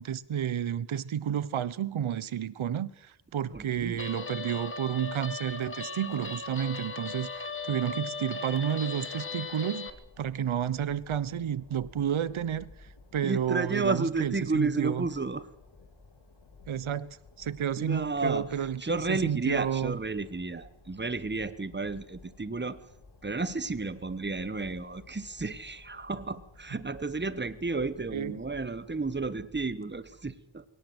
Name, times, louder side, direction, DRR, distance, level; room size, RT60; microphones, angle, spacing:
voice 1, 0.0-9.9 10.2-12.7 13.1-15.1 16.7-20.0 28.1-28.4, right 9 dB, 75° right, 1.1 m, -31 dB
voice 2, 3.5-4.0 13.2-15.5 17.8-18.5 18.8-22.8 23.2-30.6, right 3 dB, 20° right, 1.4 m, -32 dB
Guitar, 4.0-9.9, left 4 dB, 25° left, 1.9 m, -38 dB
Train, 9.9-29.5, left 3 dB, 55° left, 3.5 m, -55 dB
22.0 x 18.0 x 8.1 m
wide cardioid pair, 105°, 49 cm